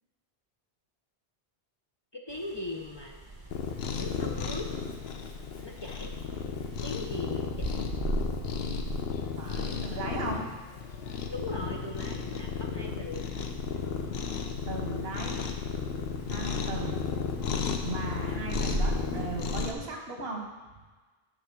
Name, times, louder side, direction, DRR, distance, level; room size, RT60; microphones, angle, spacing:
voice 1, 2.1-3.2 4.0-4.7 5.6-6.1 6.8-7.9 11.3-13.3, left 2 dB, 30° left, 0 dB, 0.6 m, -39 dB
sound 1, 2.3-19.7, right 2 dB, 25° right, 1.0 m, -41 dB
Cat, 3.5-19.7, left 6 dB, 80° left, 0.9 m, -34 dB
voice 2, 9.3-10.5 14.7-15.4 16.3-17.1 17.8-20.4, right 2 dB, 75° right, 1 dB, 1.5 m, -37 dB
10.0 x 3.7 x 6.1 m, 1.3 s
omnidirectional pair, 1.0 m